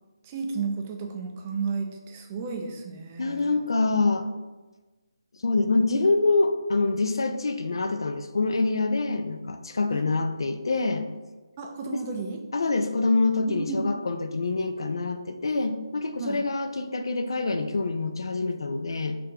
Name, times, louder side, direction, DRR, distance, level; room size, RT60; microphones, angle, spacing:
voice 1, 0.2-3.6 9.9-10.0 11.6-12.4 13.5-13.9 16.2-16.4, right 4 dB, 20° right, 2 dB, 0.3 m, -33 dB
voice 2, 3.2-4.3 5.4-11.1 11.9-12.1 12.5-19.2, left 3 dB, 70° left, 6 dB, 0.4 m, -25 dB
3.7 x 3.3 x 2.8 m, 1.2 s
hypercardioid pair, 165°, 3 cm